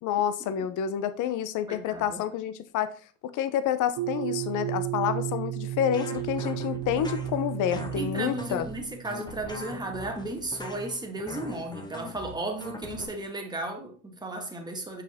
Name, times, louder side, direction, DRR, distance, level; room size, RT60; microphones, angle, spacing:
voice 1, 0.0-2.9 3.2-8.7, left 9 dB, 45° left, 0.9 m, -28 dB
voice 2, 1.7-2.2 7.7-15.0, right 2 dB, 10° right, 2.1 m, -35 dB
sound 1, 4.0-9.2, right 15 dB, 45° right, 0.5 m, -33 dB
sound 2, 5.9-13.0, left 2 dB, 10° left, 1.4 m, -41 dB
7.5 x 6.0 x 3.6 m
supercardioid pair, 115°, 42 cm